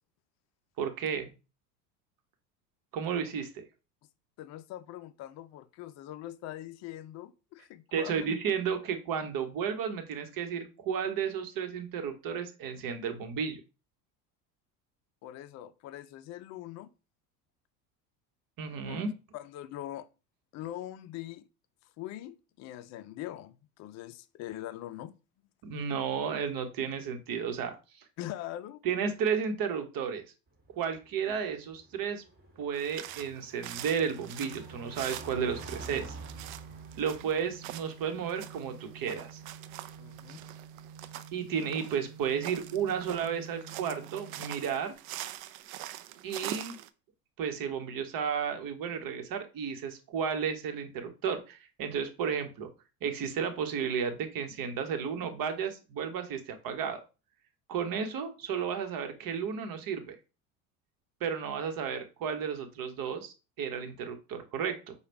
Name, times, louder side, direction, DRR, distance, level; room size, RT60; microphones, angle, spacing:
voice 1, 0.8-1.3 2.9-3.6 7.9-13.6 18.6-19.1 25.6-27.7 28.8-30.2 30.8-32.2 32.6-36.2 37.0-39.4 41.3-44.9 46.2-46.8 47.4-52.7 53.0-57.0 57.7-60.2 61.2-64.9, right 7 dB, 45° right, 1.1 m, -33 dB
voice 2, 4.4-8.4 15.2-16.9 18.8-19.0 19.3-20.1 20.5-21.5 22.0-25.1 28.2-28.8 31.3-31.4 40.0-40.4, left 13 dB, 35° left, 0.5 m, -42 dB
Car passing by / Engine, 30.5-41.1, right 2 dB, 20° right, 1.6 m, -50 dB
sound 1, 32.7-46.9, right 13 dB, 65° right, 0.6 m, -44 dB
Organ, 34.3-45.2, right 7 dB, 80° right, 1.1 m, -50 dB
5.0 x 2.4 x 4.5 m
hypercardioid pair, 80°, 47 cm